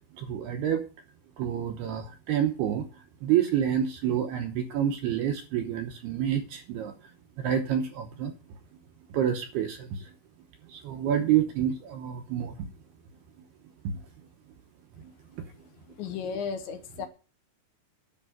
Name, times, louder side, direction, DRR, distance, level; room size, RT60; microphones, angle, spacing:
voice 1, 0.1-0.8 1.4-7.1 7.4-8.3 9.1-10.1 10.6-12.6 13.8-14.0 15.0-15.1 15.4-15.5, right 9 dB, 75° right, 5 dB, 2.4 m, -28 dB
voice 2, 16.0-17.1, left 6 dB, 70° left, 6 dB, 3.4 m, -34 dB
10.5 x 6.3 x 9.1 m, 0.35 s
omnidirectional pair, 5.8 m